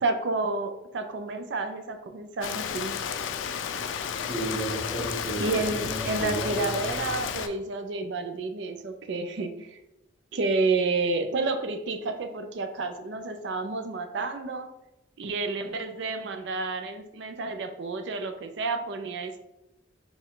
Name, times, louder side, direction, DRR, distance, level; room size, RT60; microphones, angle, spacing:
voice 1, 0.0-2.9 5.4-9.8 10.3-14.7 15.2-19.4, right 3 dB, 65° right, 7 dB, 0.4 m, -30 dB
Rain, 2.4-7.5, left 7 dB, 85° left, 0.3 m, -32 dB
voice 2, 4.2-7.0, right 1 dB, 5° right, -10 dB, 0.8 m, -33 dB
4.3 x 2.3 x 3.7 m, 0.90 s
head